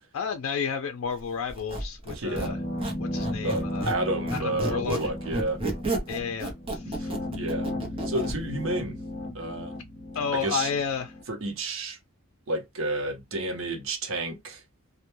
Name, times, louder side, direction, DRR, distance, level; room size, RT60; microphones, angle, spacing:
voice 1, 0.1-2.6 3.0-3.9 4.3-5.0 6.1-7.1 10.1-11.2, left 6 dB, 80° left, 0.4 m, -31 dB
Squeak, 1.5-4.0 4.3-8.4, right 2 dB, 25° right, 0.7 m, -32 dB
voice 2, 2.1-2.6 3.4-5.6 6.8-7.7 8.1-9.0 9.3-9.7 10.3-10.7 11.3-12.0 12.5-14.6, right 2 dB, 70° right, 0.7 m, -31 dB
sound 1, 2.3-11.2, left 1 dB, 30° left, 0.6 m, -35 dB
2.1 x 2.1 x 3.0 m
head